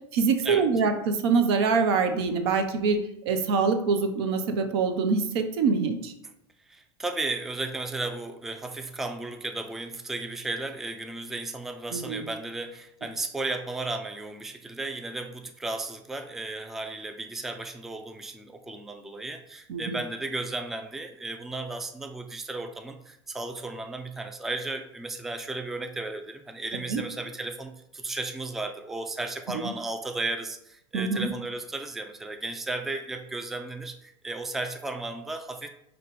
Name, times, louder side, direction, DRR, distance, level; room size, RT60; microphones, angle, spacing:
voice 1, 0.1-6.1 11.9-12.3 19.7-20.0 26.9-27.0 30.9-31.3, right 5 dB, 65° right, 7 dB, 0.6 m, -25 dB
voice 2, 6.7-35.7, right 2 dB, ahead, 7 dB, 0.3 m, -34 dB
5.1 x 2.2 x 4.0 m, 0.76 s
figure-of-eight pair, 75°, 15 cm